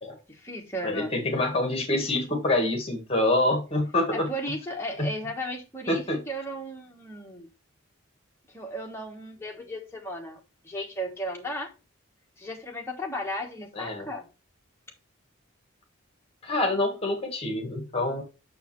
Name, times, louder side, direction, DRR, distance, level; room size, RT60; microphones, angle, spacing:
voice 1, 0.3-1.1 4.1-7.5 8.5-11.7 12.4-14.3, equal, 10° left, 1.3 m, -35 dB
voice 2, 0.8-4.3 5.0-5.1 5.9-6.2 13.7-14.1 16.4-18.2, left 2 dB, 30° left, 1.5 m, -26 dB
6.6 x 6.2 x 3.1 m
head